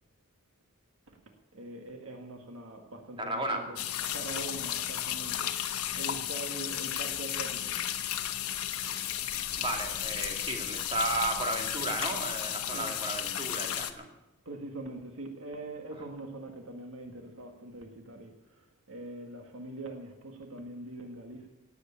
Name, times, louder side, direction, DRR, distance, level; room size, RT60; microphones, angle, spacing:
voice 1, 1.5-3.8 4.1-5.5 5.9-7.7 12.7-12.9 14.5-18.3 18.9-21.5, right 2 dB, 65° right, 4 dB, 1.9 m, -42 dB
voice 2, 3.2-3.7 9.6-14.1 15.9-16.0, right 2 dB, 25° right, 2 dB, 2.6 m, -34 dB
sound 1, 3.8-13.9, left 11 dB, 85° left, 1.2 m, -34 dB
18.0 x 8.3 x 8.5 m, 0.96 s
head